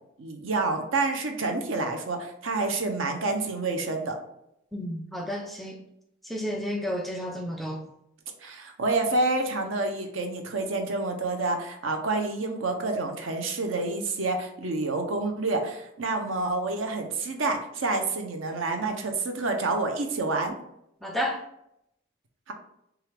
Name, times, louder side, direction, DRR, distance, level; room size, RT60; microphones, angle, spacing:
voice 1, 0.2-4.2 8.4-20.5 22.5-22.6, right 3 dB, 70° right, 4 dB, 0.8 m, -28 dB
voice 2, 4.7-5.8 6.2-7.9 21.0-21.4, equal, ahead, 2 dB, 0.4 m, -31 dB
6.2 x 2.4 x 3.4 m, 0.79 s
head